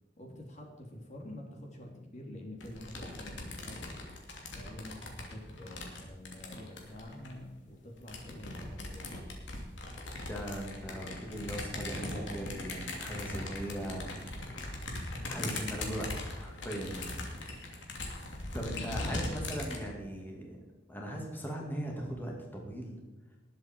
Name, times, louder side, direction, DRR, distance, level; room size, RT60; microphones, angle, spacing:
voice 1, 0.2-4.0 4.4-9.4 17.5-17.7 19.0-19.4, left 1 dB, 40° left, 1 dB, 2.3 m, -47 dB
sound 1, 2.6-7.4 8.0-19.8, left 2 dB, 80° left, 2.7 m, -40 dB
voice 2, 10.2-14.7 15.3-17.1 18.5-20.6 20.9-23.0, right 1 dB, 10° left, -1 dB, 2.2 m, -39 dB
19.5 x 7.6 x 4.4 m, 1.2 s
head